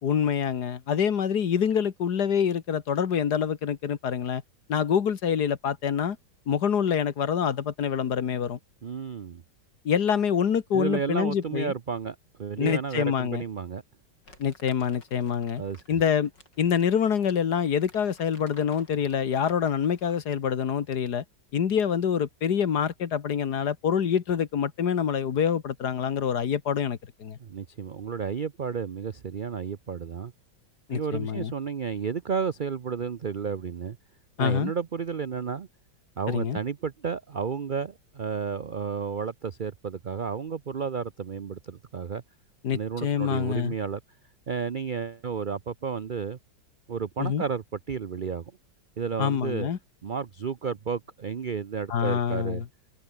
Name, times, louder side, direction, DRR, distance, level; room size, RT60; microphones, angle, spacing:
voice 1, 0.0-4.4 4.7-6.2 6.5-8.6 9.9-11.7 12.6-13.4 14.4-15.6 15.9-16.3 16.6-21.2 21.5-27.4 30.9-31.5 34.4-34.7 36.3-36.6 42.6-43.7 47.2-47.4 49.2-49.8 51.9-52.7, left 8 dB, 65° left, 1.9 m, -26 dB
voice 2, 8.8-9.4 10.7-13.8 15.6-16.0 27.4-30.3 30.9-34.0 34.4-35.7 36.2-42.2 42.7-44.0 44.5-46.4 46.9-48.4 49.0-49.7 50.0-52.6, right 6 dB, 70° right, 0.4 m, -32 dB
Crumpling crinkling, 14.2-20.3, left 2 dB, 85° left, 7.3 m, -56 dB
omnidirectional pair, 1.9 m